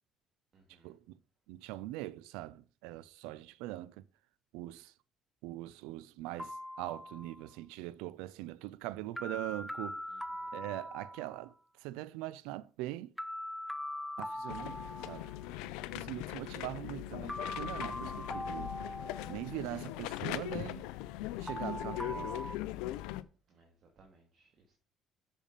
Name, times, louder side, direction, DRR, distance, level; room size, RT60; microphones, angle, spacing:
voice 1, 0.5-1.0 10.1-10.5 15.5-15.9 19.4-19.8 22.9-24.7, right 3 dB, 55° right, 2.5 m, -65 dB
voice 2, 1.5-3.9 4.5-4.9 5.4-10.0 10.5-11.5 11.8-13.1 14.2-14.8 15.1-15.3 15.9-18.7 19.3-20.8 21.4-22.3, right 16 dB, 80° right, 0.5 m, -42 dB
sound 1, 6.4-7.5 9.2-11.5 13.2-15.5 17.3-19.6 21.5-22.5, left 1 dB, ahead, 0.6 m, -41 dB
sound 2, 14.5-23.2, left 14 dB, 80° left, 0.5 m, -40 dB
7.3 x 6.8 x 5.5 m
supercardioid pair, 65°, 0 cm